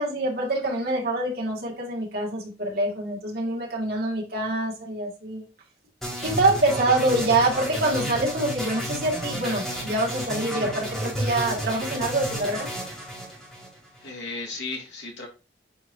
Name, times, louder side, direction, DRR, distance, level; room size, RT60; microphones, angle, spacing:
voice 1, 0.0-5.5 6.2-12.7, right 2 dB, 55° right, -2 dB, 2.3 m, -25 dB
sound 1, 6.0-14.1, right 1 dB, ahead, 2.7 m, -32 dB
voice 2, 13.9-15.3, left 3 dB, 75° left, 0 dB, 2.3 m, -35 dB
8.7 x 4.4 x 2.8 m, 0.31 s
head